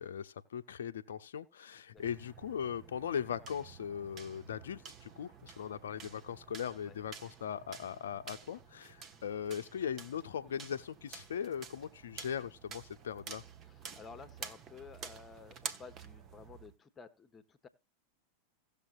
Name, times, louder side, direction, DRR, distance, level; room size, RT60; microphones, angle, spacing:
voice 1, 0.0-13.4, left 8 dB, 60° left, 0.6 m, -39 dB
sound 1, 2.0-16.7, right 6 dB, 30° right, 0.9 m, -50 dB
voice 2, 13.6-17.7, left 5 dB, 20° left, 1.1 m, -53 dB
17.0 x 6.8 x 2.5 m
figure-of-eight pair, 90°, 0 cm